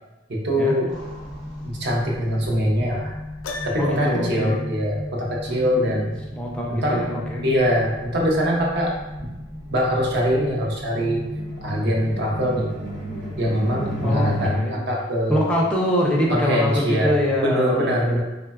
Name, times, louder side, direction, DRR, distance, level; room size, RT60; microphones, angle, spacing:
voice 1, 0.3-0.9 1.6-3.1 3.6-6.2 6.7-7.1 7.4-9.3 9.7-11.2 11.6-12.7 13.4-15.4 16.3-18.2, equal, 55° right, -1 dB, 0.5 m, -23 dB
sound 1, 0.9-14.5, equal, 90° right, 1.0 m, -34 dB
Piano, 3.4-4.3, left 3 dB, 80° left, 0.3 m, -35 dB
voice 2, 3.8-4.6 5.5-5.9 6.4-7.4 14.0-14.8 15.3-18.2, equal, 5° left, -3 dB, 0.4 m, -24 dB
3.1 x 2.1 x 2.3 m, 1.0 s
head